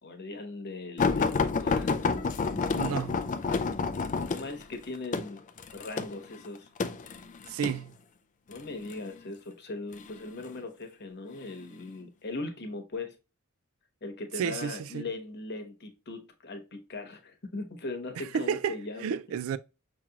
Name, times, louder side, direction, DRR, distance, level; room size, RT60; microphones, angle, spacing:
voice 1, 0.0-2.3 4.3-5.4 5.7-6.7 8.5-13.2 14.0-19.2, left 3 dB, 50° left, 1.1 m, -39 dB
sound 1, 1.0-7.8 8.6-9.0 9.9-10.6 11.3-11.5 11.9-12.0, left 4 dB, 35° left, 0.4 m, -29 dB
voice 2, 2.7-3.2 7.5-7.9 14.4-15.0 18.2-18.7 19.0-19.6, right 7 dB, 70° right, 0.3 m, -31 dB
5.9 x 2.9 x 2.3 m
head